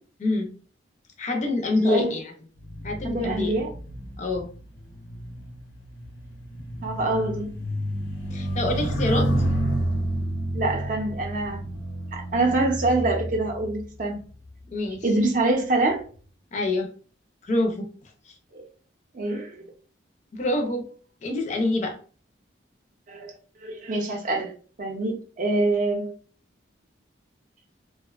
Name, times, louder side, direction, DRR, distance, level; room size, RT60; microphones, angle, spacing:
voice 1, 0.2-0.5 1.2-2.3 2.8-3.5 4.2-4.5 8.3-9.3 14.7-15.1 16.5-16.9 17.4-18.4 20.3-20.9 21.2-22.0, left 2 dB, 40° left, 3 dB, 0.4 m, -26 dB
sound 1, 2.6-14.2 15.0-15.3, right 1 dB, 85° left, 0.6 m, -30 dB
voice 2, 3.0-3.7 6.8-7.5 10.5-11.6 12.1-14.2 15.0-16.0 18.5-18.7 19.1-19.5 23.1-24.5 24.8-26.1, right 2 dB, 45° right, 2 dB, 0.5 m, -25 dB
2.5 x 2.1 x 2.3 m, 0.41 s
head